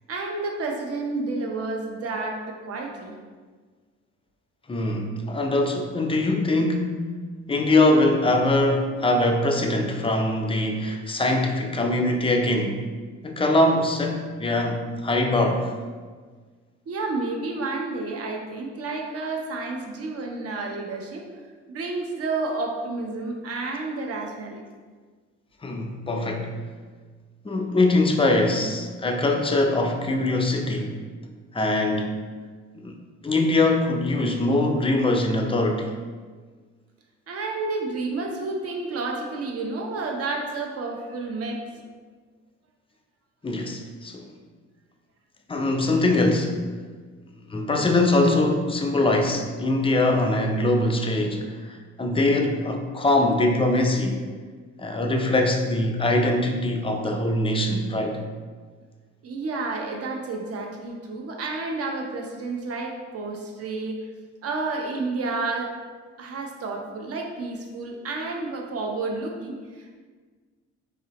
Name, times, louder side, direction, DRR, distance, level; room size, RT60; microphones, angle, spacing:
voice 1, 0.1-3.1 16.9-21.3 21.7-24.6 37.3-41.8 59.2-64.0 64.4-65.7 66.2-70.0, right 3 dB, 50° right, 2 dB, 0.7 m, -30 dB
voice 2, 4.7-7.0 7.5-12.8 13.2-15.7 25.6-26.5 27.4-31.0 31.5-32.2 32.8-32.9 33.2-35.9 43.4-44.3 45.5-46.6 47.5-54.2 54.8-58.2, left 2 dB, 20° left, 3 dB, 0.4 m, -22 dB
4.1 x 2.6 x 2.8 m, 1.5 s
cardioid pair, 90°, 30 cm